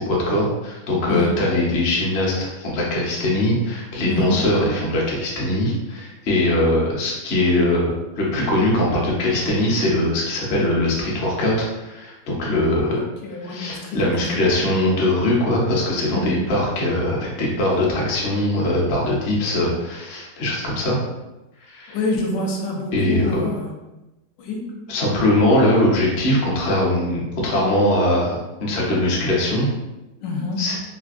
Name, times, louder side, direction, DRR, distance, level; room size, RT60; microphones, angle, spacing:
voice 1, 0.0-13.0 13.4-21.0 21.7-22.0 22.9-23.4 24.9-28.3 28.6-29.7 30.6-30.7, left 1 dB, 60° left, -4 dB, 0.6 m, -21 dB
voice 2, 4.0-4.4 12.9-14.2 14.7-14.8 16.1-16.4 19.4-19.5 21.9-23.7 24.4-24.8 30.2-30.7, left 2 dB, 80° left, 0 dB, 1.3 m, -27 dB
3.3 x 2.5 x 2.4 m, 1.0 s
omnidirectional pair, 2.0 m